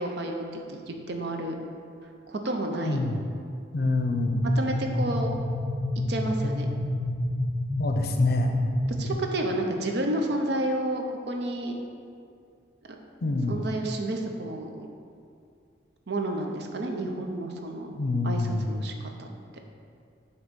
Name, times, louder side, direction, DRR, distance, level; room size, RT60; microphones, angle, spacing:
voice 1, 0.0-1.5 2.3-3.0 4.6-5.3 6.1-6.7 9.0-11.8 13.5-14.9 16.1-18.0 18.2-19.3, right 1 dB, 60° right, 3 dB, 0.6 m, -30 dB
voice 2, 2.8-3.2 3.7-4.4 7.8-8.6 13.2-13.6 17.9-18.7, left 2 dB, 55° left, 4 dB, 0.5 m, -26 dB
sound 1, 4.0-9.1, left 1 dB, 40° right, 1.5 m, -29 dB
7.6 x 3.0 x 5.2 m, 2.3 s
head